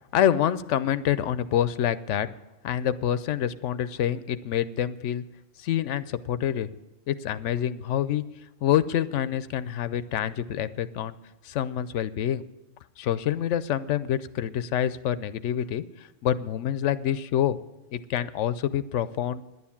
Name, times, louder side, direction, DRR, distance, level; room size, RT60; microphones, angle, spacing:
voice 1, 0.1-2.3 2.6-5.2 5.6-6.7 7.1-8.2 8.6-11.2 11.4-12.4 13.0-17.6 17.9-19.4, left 10 dB, 85° left, 15 dB, 0.9 m, -27 dB
10.5 x 9.6 x 7.1 m, 1.0 s
omnidirectional pair, 1.2 m